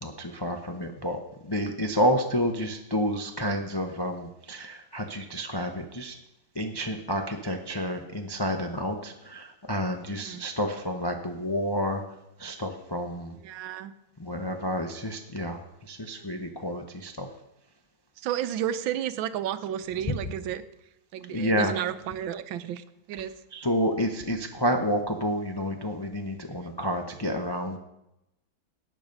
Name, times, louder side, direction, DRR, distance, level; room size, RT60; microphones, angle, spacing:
voice 1, 0.0-6.2 6.5-12.0 12.4-13.4 14.2-17.3 20.0-20.1 21.3-21.7 23.5-27.8, equal, 35° left, 3 dB, 0.3 m, -29 dB
voice 2, 13.4-13.9 16.2-16.5 18.2-20.6 21.1-23.3, right 10 dB, 80° right, 12 dB, 1.5 m, -32 dB
18.0 x 6.1 x 5.3 m, 0.87 s
omnidirectional pair, 2.1 m